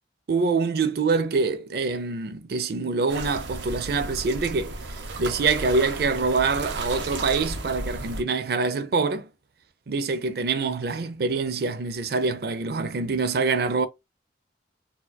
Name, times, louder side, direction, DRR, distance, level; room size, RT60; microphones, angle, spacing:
voice 1, 0.3-9.3 9.9-13.9, right 4 dB, 60° right, 0.4 m, -25 dB
sound 1, 3.1-8.2, right 2 dB, 90° right, 0.8 m, -34 dB
4.2 x 2.3 x 2.2 m
head